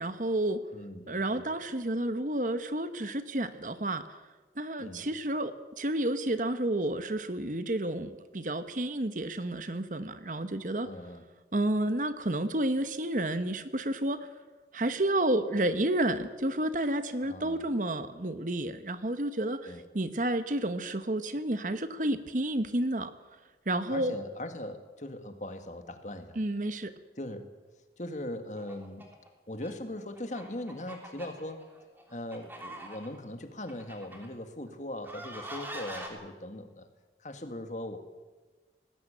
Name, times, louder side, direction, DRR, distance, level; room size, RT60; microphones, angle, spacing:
voice 1, 0.0-0.6 1.1-4.0 4.6-10.9 11.5-14.3 14.7-23.1 23.7-24.1 26.4-26.9, right 1 dB, 45° right, 11 dB, 1.1 m, -30 dB
voice 2, 0.7-1.5 4.8-5.1 10.8-11.2 17.2-17.7 19.6-19.8 23.9-26.4 27.2-27.5 28.0-29.1 29.5-31.6 32.1-36.9 37.2-38.0, left 1 dB, 40° left, 8 dB, 1.9 m, -40 dB
sound 1, 28.6-29.3 29.6-29.7 30.2-33.2 33.7-34.3 35.0-36.1, right 1 dB, 10° right, 3.3 m, -44 dB
19.0 x 17.0 x 8.9 m, 1.3 s
head